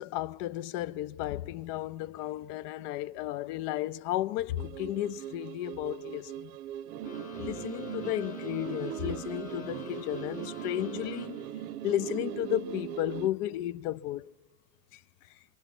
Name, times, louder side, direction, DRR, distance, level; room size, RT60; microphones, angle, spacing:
voice 1, 0.0-6.5 7.4-11.4 11.8-14.2 14.9-15.0, left 14 dB, 70° left, 0.6 m, -33 dB
sound 1, 4.6-13.3, right 11 dB, 65° right, 0.7 m, -39 dB
sound 2, 7.0-11.7, left 7 dB, 15° left, 1.1 m, -46 dB
27.5 x 24.0 x 6.0 m
cardioid pair, 155°, 48 cm